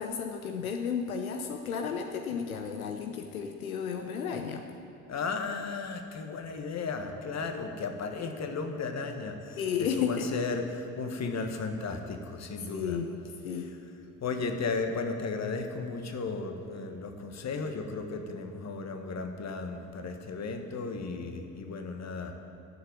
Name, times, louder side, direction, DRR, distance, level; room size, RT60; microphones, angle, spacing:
voice 1, 0.0-4.6 9.6-10.3 12.7-13.2 13.4-13.7, left 7 dB, 85° left, 5 dB, 0.7 m, -33 dB
voice 2, 5.1-13.0 13.5-13.8 14.2-22.4, left 4 dB, 40° left, 6 dB, 1.5 m, -35 dB
11.0 x 6.9 x 9.6 m, 2.8 s
figure-of-eight pair, 50°, 41 cm